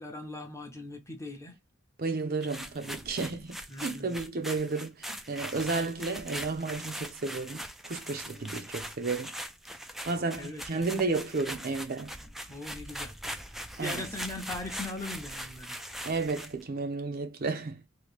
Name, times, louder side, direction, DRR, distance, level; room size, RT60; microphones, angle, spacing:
voice 1, 0.0-1.6 3.7-4.1 8.3-8.5 10.4-10.9 12.2-13.1 13.8-15.8, left 2 dB, 15° left, 0.7 m, -40 dB
voice 2, 2.0-9.3 10.0-12.2 13.8-14.0 16.0-17.8, right 3 dB, 45° right, 0.6 m, -32 dB
sound 1, 2.4-16.6, equal, ahead, 0.3 m, -41 dB
2.9 x 2.7 x 3.3 m
head